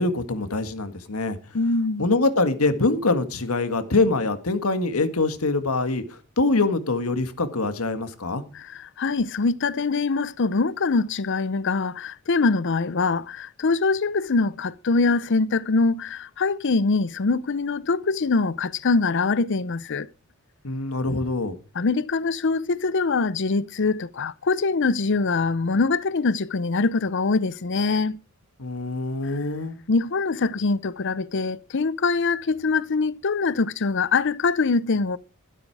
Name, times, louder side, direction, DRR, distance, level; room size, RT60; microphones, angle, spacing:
voice 1, 0.0-1.4 2.0-8.4 20.6-21.6 28.6-29.8, left 3 dB, 85° left, 1.8 m, -24 dB
voice 2, 1.5-2.1 8.5-20.1 21.7-28.2 29.2-29.4 29.9-35.2, left 4 dB, 55° left, 0.6 m, -23 dB
13.5 x 12.5 x 4.8 m
head